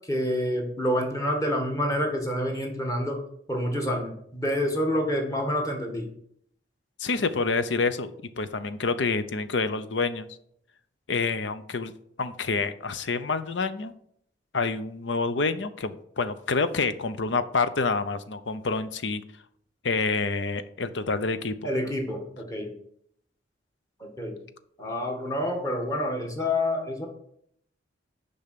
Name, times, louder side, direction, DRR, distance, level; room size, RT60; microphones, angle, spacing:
voice 1, 0.1-3.2 3.5-6.1 21.6-22.7 24.0-24.4 24.8-27.1, left 1 dB, 20° left, 1 dB, 1.8 m, -28 dB
voice 2, 7.0-10.3 11.1-11.9 12.2-13.9 14.5-19.2 19.8-21.5, left 4 dB, 75° left, 12 dB, 0.7 m, -27 dB
6.9 x 5.5 x 6.7 m, 0.69 s
head